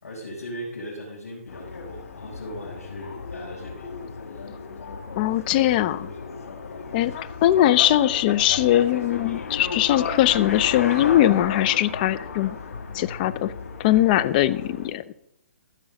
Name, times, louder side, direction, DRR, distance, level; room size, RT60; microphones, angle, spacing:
voice 1, 0.0-3.9 4.3-4.5, equal, 85° left, -5 dB, 4.8 m, -38 dB
sound 1, 1.5-14.9, left 4 dB, 70° left, 2.2 m, -34 dB
voice 2, 5.2-6.1 6.9-12.6 12.9-13.5 13.8-15.0, left 13 dB, 35° left, 12 dB, 0.6 m, -21 dB
15.0 x 6.2 x 6.4 m, 0.77 s
hypercardioid pair, 140°, 8 cm